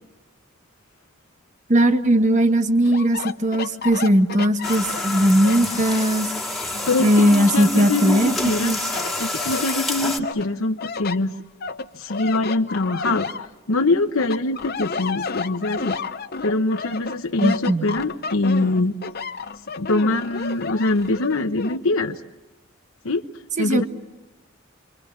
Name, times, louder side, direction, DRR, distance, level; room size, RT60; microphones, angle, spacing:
voice 1, 1.7-6.3 7.0-8.8 17.4-17.9 23.6-23.9, equal, 35° right, 7 dB, 1.4 m, -18 dB
sound 1, 2.8-6.3 6.7-8.5 8.9-9.8 10.2-13.9 14.2-21.8, left 4 dB, 50° left, 0.9 m, -32 dB
sound 2, 4.6-10.2, left 2 dB, ahead, 2.1 m, -28 dB
voice 2, 6.6-8.7 9.2-11.3 11.9-13.3 13.7-16.0 16.4-18.9 19.8-22.2 23.0-23.3 23.6-23.8, left 2 dB, 80° left, 6 dB, 1.0 m, -23 dB
28.0 x 24.5 x 7.4 m, 1.1 s
head